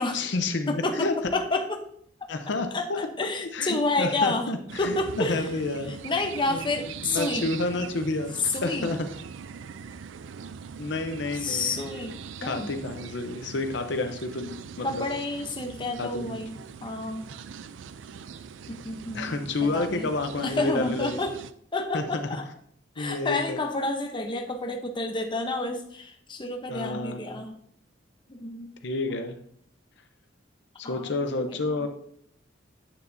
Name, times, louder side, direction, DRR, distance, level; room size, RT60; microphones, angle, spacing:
voice 1, 0.1-1.1 2.3-3.0 3.5-5.9 6.5-6.6 7.0-8.3 8.6-9.1 10.8-11.8 12.4-15.1 16.0-16.4 19.1-21.2 21.9-22.0 23.0-23.6 26.7-27.4 28.8-29.4 30.8-31.9, left 2 dB, 65° left, 7 dB, 0.7 m, -30 dB
voice 2, 0.7-1.9 2.2-2.3 2.7-4.5 4.8-5.5 6.0-7.5 8.4-8.9 11.4-12.7 14.8-17.3 18.7-20.1 20.4-21.3 21.7-22.5 23.0-27.6 28.3-28.7 30.8-31.9, left 2 dB, 25° left, 4 dB, 0.8 m, -30 dB
sound 1, 4.7-21.5, right 6 dB, 80° right, 0.4 m, -42 dB
8.8 x 6.9 x 2.7 m, 0.65 s
head